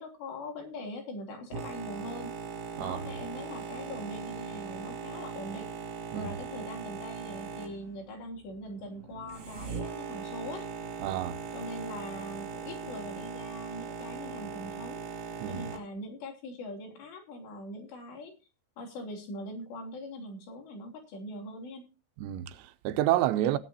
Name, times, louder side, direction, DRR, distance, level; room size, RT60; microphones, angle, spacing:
voice 1, 0.0-2.4 2.8-5.7 6.1-10.7 11.5-15.0 15.5-18.4 18.8-21.9, left 1 dB, 80° left, 5.3 m, -42 dB
Boat Water vehicle, 1.5-15.8, right 5 dB, 65° right, 4.1 m, -40 dB
voice 2, 11.0-11.4 15.4-15.6 22.2-23.6, right 13 dB, 85° right, 3.1 m, -29 dB
17.0 x 11.5 x 2.8 m
omnidirectional pair, 4.9 m